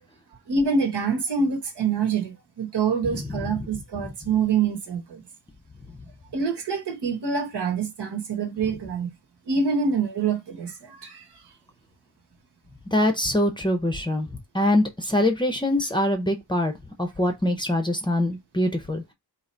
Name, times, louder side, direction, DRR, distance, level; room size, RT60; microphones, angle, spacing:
voice 1, 0.5-5.2 6.3-9.1 9.5-11.3, right 5 dB, 80° right, 1.3 m, -26 dB
voice 2, 3.0-3.7 12.9-14.3 14.5-16.7 17.0-19.1, left 1 dB, 10° left, 0.6 m, -24 dB
3.9 x 2.9 x 4.3 m
wide cardioid pair, 175°, 40 cm